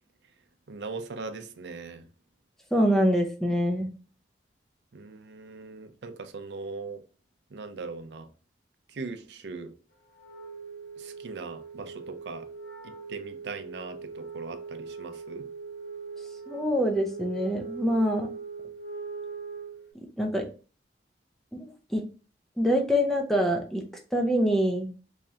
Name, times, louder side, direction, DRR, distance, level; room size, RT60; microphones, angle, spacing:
voice 1, 0.7-2.0 4.9-7.0 7.5-8.3 8.9-9.7 11.0-12.5 12.8-15.4, right 4 dB, 80° right, 0.5 m, -40 dB
voice 2, 2.7-3.9 16.5-18.3 19.9-20.4 21.9-22.0 22.6-23.8 24.1-24.9, equal, ahead, 0.5 m, -25 dB
Wind instrument woodwind instrument, 10.1-19.9, right 5 dB, 75° left, 0.7 m, -41 dB
3.6 x 3.1 x 2.7 m
head